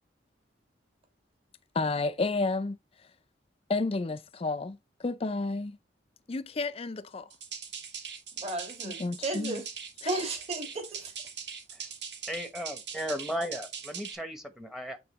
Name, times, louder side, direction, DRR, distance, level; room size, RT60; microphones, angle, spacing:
voice 1, 1.7-2.8 3.7-5.8 6.3-7.3 8.8-9.6, left 3 dB, 30° left, 0.4 m, -31 dB
sound 1, 7.3-14.1, right 6 dB, 65° right, 1.8 m, -41 dB
voice 2, 8.4-9.7 10.0-11.1, right 2 dB, 35° right, 1.7 m, -34 dB
voice 3, 12.3-15.0, equal, ahead, 0.9 m, -35 dB
8.8 x 3.8 x 3.0 m
head